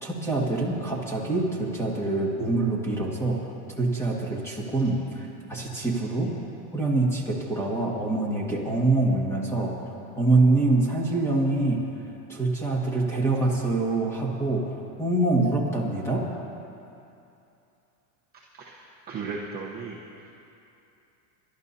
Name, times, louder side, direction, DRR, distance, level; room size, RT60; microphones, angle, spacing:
voice 1, 0.0-3.4 3.8-6.3 6.7-9.7 10.1-11.8 12.3-16.3, right 2 dB, 5° left, -3 dB, 1.8 m, -25 dB
voice 2, 18.5-20.3, right 4 dB, 20° right, -5 dB, 0.9 m, -37 dB
29.0 x 12.0 x 2.8 m, 2.7 s
supercardioid pair, 160°, 49 cm